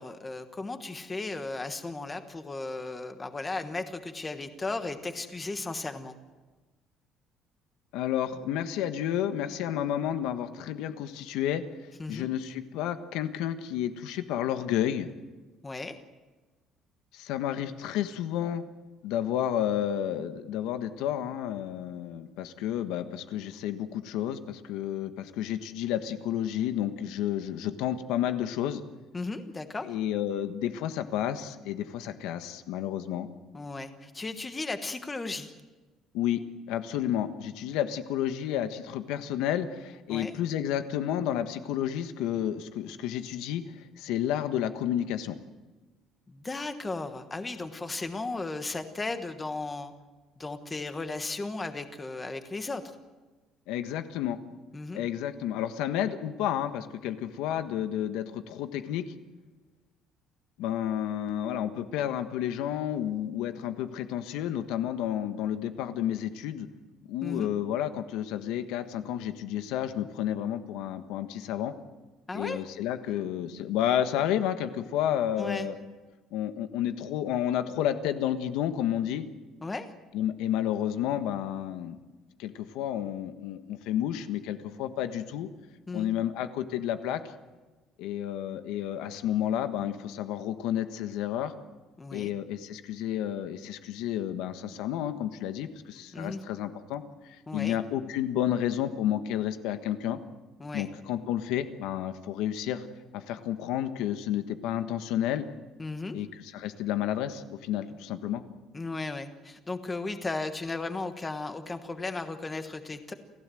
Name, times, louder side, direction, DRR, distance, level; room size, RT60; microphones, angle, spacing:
voice 1, 0.0-6.2 12.0-12.3 15.6-15.9 29.1-29.9 33.5-35.5 40.1-40.3 46.3-49.9 50.4-52.8 54.7-55.0 67.2-67.5 72.3-72.6 75.4-75.7 79.6-79.9 85.9-86.1 92.0-92.3 96.1-96.4 97.5-97.8 100.6-100.9 105.8-106.2 108.7-113.1, left 3 dB, 15° left, 8 dB, 1.3 m, -35 dB
voice 2, 7.9-11.6 12.1-15.1 17.1-18.6 19.0-28.8 29.8-33.3 36.1-36.4 36.7-45.4 53.7-54.4 54.9-59.1 60.6-66.7 67.1-71.7 72.3-75.8 76.3-79.3 80.1-82.0 82.4-85.5 85.9-87.2 88.0-91.5 92.1-100.2 100.7-102.9 103.1-105.4 106.1-108.4, left 11 dB, 85° left, 9 dB, 1.4 m, -31 dB
29.0 x 15.5 x 7.8 m, 1.3 s
cardioid pair, 180°, 0 cm